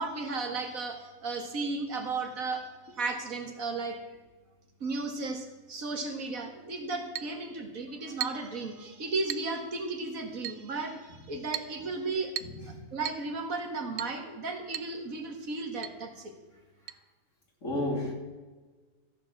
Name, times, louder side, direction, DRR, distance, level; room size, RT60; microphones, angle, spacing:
voice 1, 0.0-4.0 4.8-12.3 12.9-16.3, right 3 dB, 85° right, 4 dB, 2.2 m, -34 dB
Chink clink, 7.1-7.4 8.2-8.5 9.3-9.5 10.4-10.7 11.5-11.8 12.4-12.6 13.0-13.3 14.0-14.2 14.7-14.9 15.2-15.3 15.8-16.0 16.9-17.0, right 11 dB, 65° right, 0.8 m, -36 dB
voice 2, 12.4-12.8 17.6-18.1, left 1 dB, 65° left, 1 dB, 3.1 m, -33 dB
14.5 x 7.0 x 7.4 m, 1.3 s
omnidirectional pair, 1.4 m